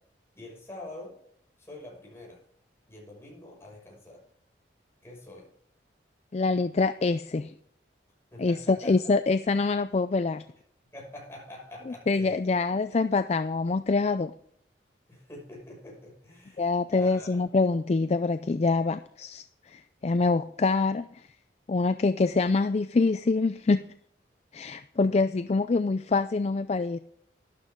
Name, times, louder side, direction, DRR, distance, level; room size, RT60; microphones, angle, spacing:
voice 1, 0.4-1.1 1.6-2.4 2.9-4.2 5.0-5.5 8.3-8.9 10.9-12.5 15.1-17.4, left 1 dB, 15° left, -3 dB, 6.1 m, -45 dB
voice 2, 6.3-7.5 8.4-10.4 11.9-14.3 16.6-21.2 21.7-23.8 24.5-27.0, left 3 dB, 35° left, 12 dB, 0.4 m, -25 dB
12.5 x 11.5 x 3.7 m, 0.67 s
head